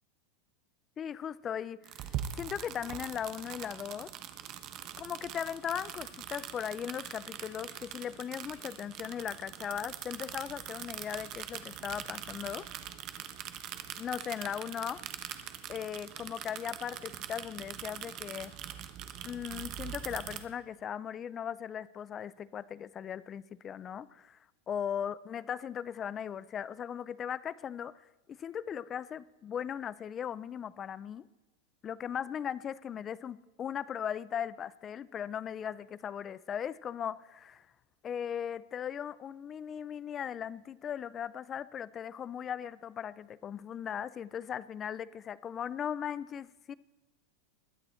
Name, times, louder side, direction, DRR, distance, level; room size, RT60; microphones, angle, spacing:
voice 1, 1.0-4.1 5.0-12.7 14.0-15.0 15.7-18.5 19.2-24.4 24.7-31.3 31.8-37.7 38.0-46.7, left 8 dB, 20° left, 19 dB, 0.3 m, -38 dB
sound 1, 1.8-20.4, right 10 dB, 30° right, 0.9 m, -43 dB
21.0 x 8.9 x 4.3 m, 1.2 s
supercardioid pair, 175°, 0 cm